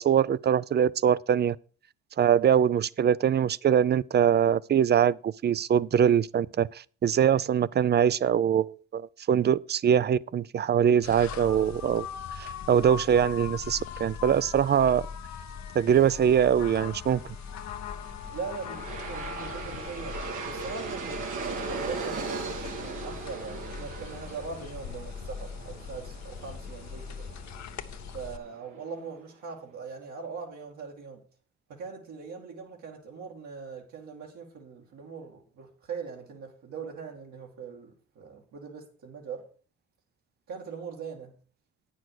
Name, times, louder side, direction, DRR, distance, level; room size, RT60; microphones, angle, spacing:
voice 1, 0.0-1.6 2.2-6.7 7.0-12.1 12.4-15.1 15.7-17.2, right 8 dB, 35° right, 0.4 m, -23 dB
sound 1, 11.0-28.4, left 7 dB, 65° left, 0.9 m, -40 dB
Aircraft, 17.8-28.8, right 4 dB, 90° right, 2.4 m, -39 dB
voice 2, 18.3-20.2 20.5-27.3 28.1-31.2 31.7-39.4 40.5-41.4, right 5 dB, 70° right, 2.2 m, -41 dB
9.1 x 6.3 x 6.4 m
cardioid pair, 90°, 30 cm